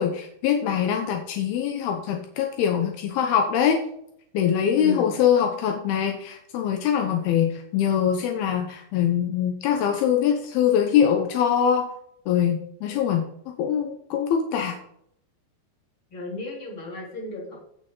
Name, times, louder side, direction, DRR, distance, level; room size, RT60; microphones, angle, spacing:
voice 1, 0.0-3.8 4.3-11.9 12.3-13.3 13.6-14.8, left 8 dB, 85° left, 3 dB, 2.2 m, -23 dB
voice 2, 4.6-5.1 16.1-17.7, left 2 dB, 30° left, -3 dB, 3.5 m, -34 dB
15.5 x 6.2 x 3.8 m, 0.71 s
omnidirectional pair, 5.7 m